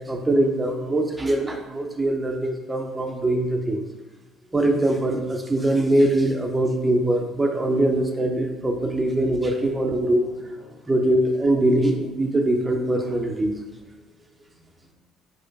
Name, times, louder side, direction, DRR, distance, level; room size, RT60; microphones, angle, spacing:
voice 1, 0.0-3.9 4.5-10.2 10.9-13.5, right 1 dB, 20° right, 3 dB, 0.5 m, -22 dB
voice 2, 8.5-9.1 10.0-10.9 13.5-13.8 14.4-14.5 14.8-14.9, left 4 dB, 60° left, -4 dB, 1.0 m, -47 dB
4.4 x 4.3 x 2.3 m, 1.1 s
figure-of-eight pair, 50°, 0 cm